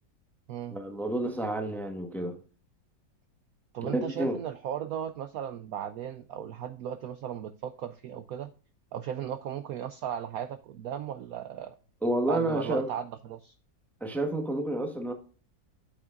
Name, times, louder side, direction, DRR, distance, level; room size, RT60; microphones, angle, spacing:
voice 1, 0.7-2.4 3.8-4.4 12.0-12.9 14.0-15.1, right 1 dB, ahead, 0.9 m, -30 dB
voice 2, 3.7-8.5 8.9-11.7 12.3-13.5, right 9 dB, 75° right, 0.8 m, -36 dB
8.5 x 8.1 x 2.4 m
omnidirectional pair, 2.0 m